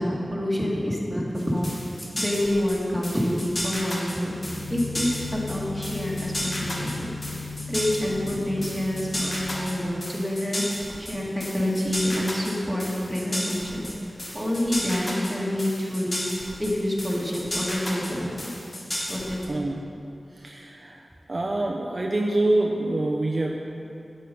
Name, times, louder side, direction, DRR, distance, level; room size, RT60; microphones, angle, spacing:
voice 1, 0.0-1.7 2.2-7.1 7.7-18.5 19.1-19.7, left 1 dB, 5° right, -5 dB, 2.2 m, -27 dB
sound 1, 1.4-19.5, left 1 dB, 45° left, 2.0 m, -33 dB
sound 2, 4.4-9.8, left 4 dB, 65° left, 2.7 m, -36 dB
voice 2, 19.5-19.8 20.4-21.0 21.3-23.6, right 2 dB, 45° right, 0 dB, 0.7 m, -25 dB
9.0 x 9.0 x 5.4 m, 2.7 s
wide cardioid pair, 70°, 0 cm